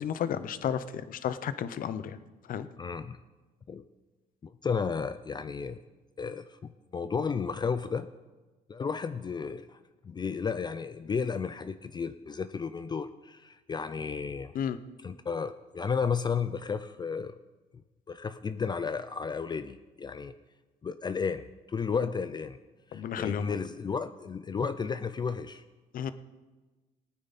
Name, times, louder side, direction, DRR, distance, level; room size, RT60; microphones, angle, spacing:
voice 1, 0.0-2.2 2.5-2.7 14.5-14.8 22.9-23.5 25.9-26.1, left 8 dB, 55° left, 13 dB, 0.8 m, -32 dB
voice 2, 2.8-3.2 3.7-3.8 4.4-5.8 6.2-8.1 8.7-9.8 10.0-14.5 15.0-17.4 18.1-20.3 20.8-22.6 22.9-25.6, left 5 dB, 25° left, 12 dB, 0.4 m, -33 dB
18.5 x 9.4 x 4.2 m, 1.2 s
cardioid pair, 110°, 17 cm